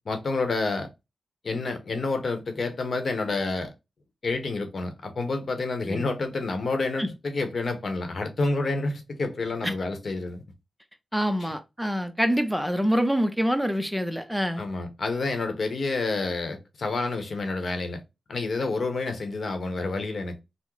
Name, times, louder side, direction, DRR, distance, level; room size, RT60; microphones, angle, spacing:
voice 1, 0.1-0.9 1.4-3.7 4.2-10.4 11.4-11.5 14.6-18.0 18.3-20.4, left 3 dB, 65° left, 0.9 m, -29 dB
voice 2, 11.1-14.6, equal, 5° right, 0.6 m, -26 dB
3.7 x 2.0 x 3.1 m
cardioid pair, 50°, 0 cm